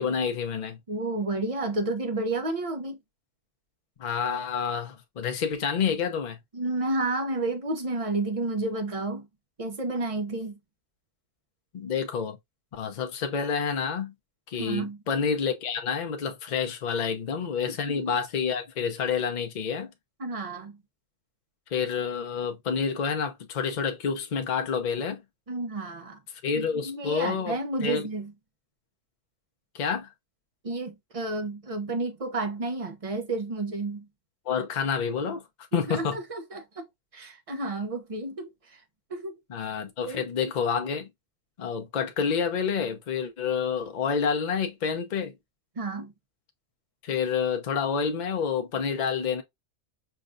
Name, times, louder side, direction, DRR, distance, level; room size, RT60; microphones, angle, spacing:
voice 1, 0.0-0.8 4.0-6.4 11.7-12.4 12.7-14.1 14.5-19.9 21.7-25.2 26.4-28.0 29.7-30.1 34.5-35.4 35.7-36.2 39.5-41.1 41.6-45.3 47.0-49.4, left 6 dB, 45° left, 0.6 m, -28 dB
voice 2, 0.9-3.0 6.5-9.3 9.6-10.6 14.6-15.0 17.7-18.2 20.2-20.8 25.5-26.2 26.6-28.3 30.6-34.1 35.7-36.9 37.1-38.8 39.1-39.3 40.0-40.2 45.8-46.1, right 2 dB, 40° right, 0.5 m, -31 dB
5.6 x 2.3 x 2.5 m
omnidirectional pair, 1.5 m